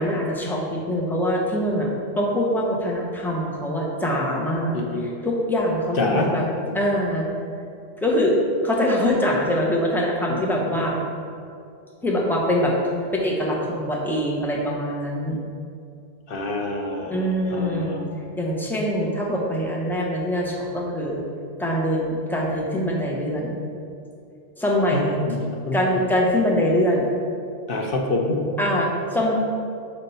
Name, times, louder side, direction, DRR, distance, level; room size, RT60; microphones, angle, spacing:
voice 1, 0.0-1.9 2.2-4.8 5.0-6.4 6.7-7.3 8.0-8.3 8.6-11.0 12.0-12.7 13.1-15.4 17.0-18.0 18.4-21.2 21.6-23.6 24.6-25.2 25.7-27.1 28.6-29.4, equal, ahead, -3 dB, 0.6 m, -23 dB
voice 2, 4.7-5.0 6.0-6.3 6.7-6.8 10.3-10.8 16.3-18.1 24.9-25.4 25.6-25.8 27.7-28.5, left 2 dB, 60° left, 1 dB, 0.9 m, -27 dB
4.3 x 4.3 x 5.5 m, 2.4 s
omnidirectional pair, 1.1 m